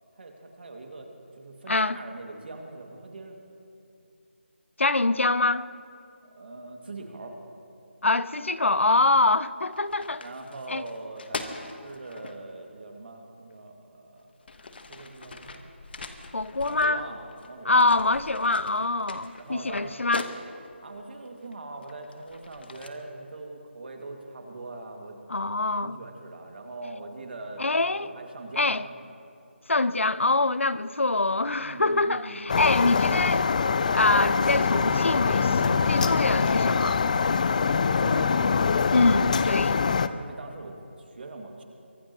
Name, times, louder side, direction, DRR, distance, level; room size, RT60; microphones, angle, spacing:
voice 1, 0.2-3.4 6.2-7.4 10.2-14.2 14.9-15.7 16.6-18.0 19.4-20.0 20.8-25.2 25.8-28.9 31.6-32.4 36.0-36.2 37.9-38.4 40.1-41.6, right 2 dB, 55° right, 2.2 m, -42 dB
voice 2, 1.7-2.0 4.8-5.7 8.0-10.2 10.7-10.8 16.3-17.0 17.7-20.3 25.3-26.0 27.6-28.1 28.6-28.8 29.7-33.5 33.9-37.0 38.9-39.8, left 2 dB, 85° left, 0.6 m, -24 dB
sound 1, 9.2-9.4 9.7-12.4 13.5-13.6 14.2-17.5 17.8-20.8 21.4-22.9, left 3 dB, 55° left, 1.2 m, -41 dB
sound 2, 32.5-40.1, left 5 dB, 40° left, 0.5 m, -24 dB
24.0 x 17.5 x 3.0 m
figure-of-eight pair, 160°, 7 cm